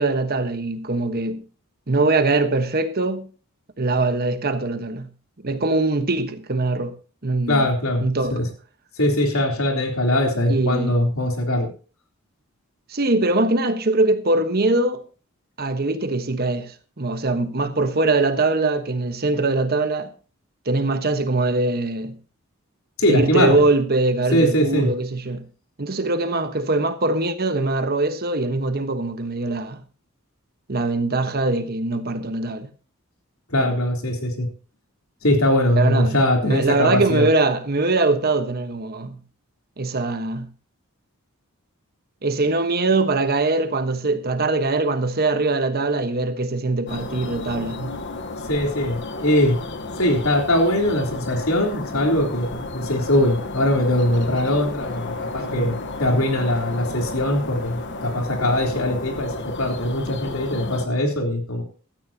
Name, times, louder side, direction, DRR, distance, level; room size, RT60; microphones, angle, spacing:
voice 1, 0.0-1.4 1.9-3.3 3.8-5.1 5.4-6.9 7.2-7.7 8.0-8.4 10.5-10.9 12.9-15.0 15.6-20.1 20.6-22.2 23.0-25.4 25.8-29.8 30.7-32.7 33.6-33.7 35.8-36.2 36.5-39.2 39.8-40.5 42.2-47.9 55.5-55.8, right 2 dB, 45° right, 1.3 m, -22 dB
voice 2, 7.5-8.1 8.3-8.5 9.0-11.7 23.0-23.6 24.3-24.9 33.5-34.5 35.2-37.3 48.5-49.6 50.0-61.6, left 1 dB, 70° left, 3.6 m, -21 dB
sound 1, 46.9-60.9, left 2 dB, 55° left, 1.2 m, -32 dB
16.0 x 13.5 x 2.9 m
head